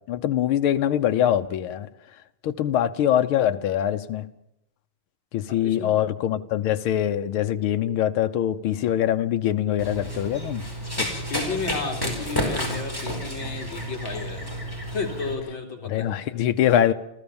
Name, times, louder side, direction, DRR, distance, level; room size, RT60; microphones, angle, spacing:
voice 1, 0.1-1.9 2.4-4.3 5.3-10.6 11.0-11.2 15.9-16.9, left 11 dB, 75° left, 1.8 m, -23 dB
voice 2, 5.5-5.9 11.3-14.5 14.9-16.1 16.6-16.9, left 4 dB, 60° left, 3.8 m, -33 dB
Run, 9.8-15.3, equal, 10° left, 4.7 m, -31 dB
27.5 x 15.0 x 7.1 m
omnidirectional pair, 2.4 m